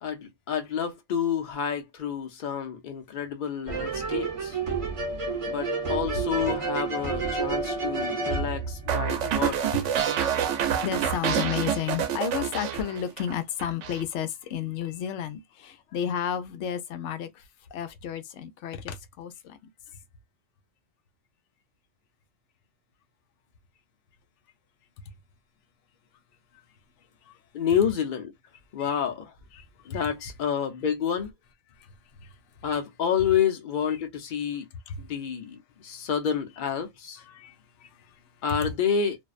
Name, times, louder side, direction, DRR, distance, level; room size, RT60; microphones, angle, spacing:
voice 1, 0.0-4.6 5.4-9.8 27.5-28.3 28.7-29.3 29.9-31.3 32.6-34.6 35.0-37.2 38.4-39.2, left 8 dB, 50° left, 0.7 m, -29 dB
sound 1, 3.7-9.4, right 4 dB, 30° right, 0.7 m, -30 dB
sound 2, 8.9-13.3 13.6-14.0, right 9 dB, 80° right, 0.9 m, -27 dB
voice 2, 9.7-17.4 17.7-19.6 25.0-25.1 27.2-27.4 28.8-29.0 29.5-30.3 31.8-32.7 33.9-34.0 34.9-35.1 37.2-38.7, left 8 dB, 75° left, 0.9 m, -33 dB
2.5 x 2.1 x 2.3 m
omnidirectional pair, 1.2 m